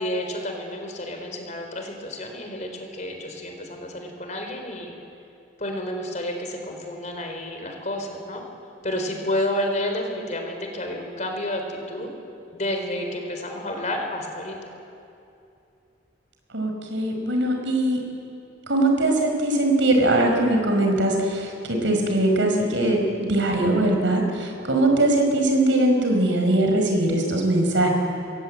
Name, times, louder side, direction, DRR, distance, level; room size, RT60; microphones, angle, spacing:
voice 1, 0.0-4.9 5.6-8.4 8.8-12.1 12.5-14.7, left 1 dB, 40° left, 3 dB, 4.1 m, -30 dB
voice 2, 16.5-18.0 18.7-27.9, right 1 dB, 80° right, 2 dB, 5.3 m, -21 dB
28.0 x 22.0 x 8.7 m, 2.7 s
head